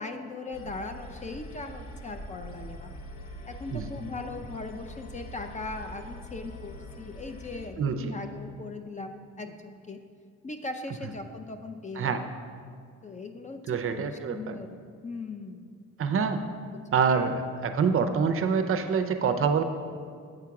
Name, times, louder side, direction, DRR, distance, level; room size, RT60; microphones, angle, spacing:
voice 1, 0.0-2.9 3.5-10.0 10.4-12.3 13.0-13.6 13.9-14.8 15.0-15.7 16.7-16.8 17.2-17.4, left 3 dB, 25° left, 6 dB, 0.5 m, -39 dB
sound 1, 0.5-7.7, equal, 80° left, 0.9 m, -43 dB
voice 2, 7.8-8.1 12.0-12.2 13.7-14.6 16.0-16.4 16.9-19.6, right 6 dB, 45° right, 8 dB, 0.5 m, -26 dB
7.8 x 3.6 x 5.8 m, 2.2 s
cardioid pair, 90°, 30 cm